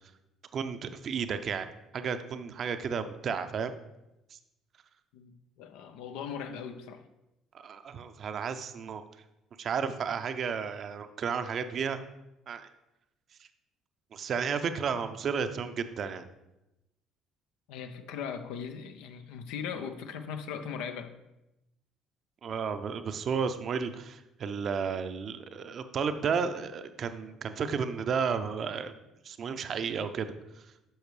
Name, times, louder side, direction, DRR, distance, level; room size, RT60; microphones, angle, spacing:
voice 1, 0.5-1.7 1.9-3.7 4.3-4.4 7.5-9.0 9.6-12.0 12.5-12.7 14.1-16.2 22.4-29.0 29.2-30.3, right 6 dB, 50° right, 9 dB, 0.6 m, -32 dB
voice 2, 5.1-7.0 17.7-21.1, left 7 dB, 70° left, 8 dB, 0.6 m, -39 dB
10.0 x 6.4 x 3.2 m, 0.93 s
hypercardioid pair, 55°, 0 cm